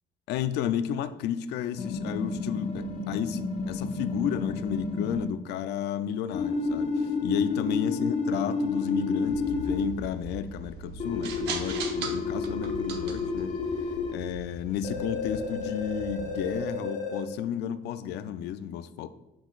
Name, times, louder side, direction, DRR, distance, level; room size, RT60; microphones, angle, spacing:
voice 1, 0.3-19.1, left 9 dB, 80° left, 12 dB, 0.5 m, -32 dB
sound 1, 1.8-5.3 6.3-9.9 11.0-14.1 14.8-17.2, left 3 dB, 45° left, 1.0 m, -31 dB
sound 2, 9.2-16.6, right 3 dB, 80° right, 1.0 m, -40 dB
7.5 x 7.2 x 2.4 m, 0.98 s
cardioid pair, 110°, 17 cm